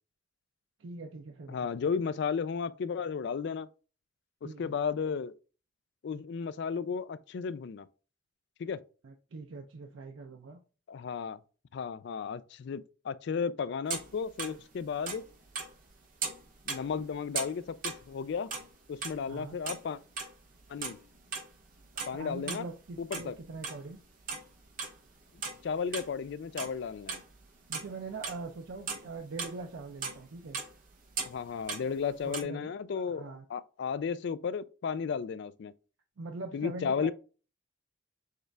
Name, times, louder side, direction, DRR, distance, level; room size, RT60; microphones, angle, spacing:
voice 1, 0.8-1.6 4.4-4.8 9.0-10.6 19.3-19.6 22.1-24.0 27.7-30.6 32.2-32.7 33.0-33.4 36.2-37.1, right 3 dB, 85° right, 0.5 m, -42 dB
voice 2, 1.5-3.7 4.4-5.3 6.0-7.9 8.6-8.8 10.9-11.4 11.7-15.2 16.7-18.5 18.9-20.0 20.7-21.0 22.1-22.7 23.0-23.4 25.6-27.2 31.2-35.7 36.5-37.1, left 6 dB, 60° left, 0.3 m, -34 dB
sound 1, 13.9-14.6 14.8-15.9 16.2-18.7 19.0-19.9 20.2-22.6 22.9-23.8 24.2-26.3 26.6-27.4 27.7-32.4, right 5 dB, 45° right, 0.8 m, -38 dB
6.5 x 2.4 x 3.3 m
head